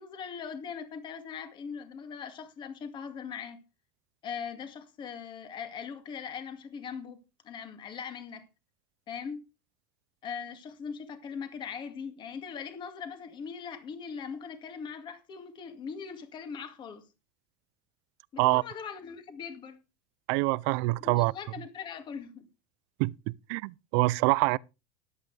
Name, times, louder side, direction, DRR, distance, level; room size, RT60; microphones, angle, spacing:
voice 1, 0.0-3.6 4.2-7.2 7.4-8.5 9.1-9.4 10.2-17.1 18.3-19.8 21.0-22.5, left 6 dB, 30° left, 2.1 m, -40 dB
voice 2, 20.3-21.3 23.0-23.1 23.5-24.6, right 23 dB, 65° right, 0.5 m, -25 dB
13.5 x 11.0 x 3.3 m
supercardioid pair, 145°, 15 cm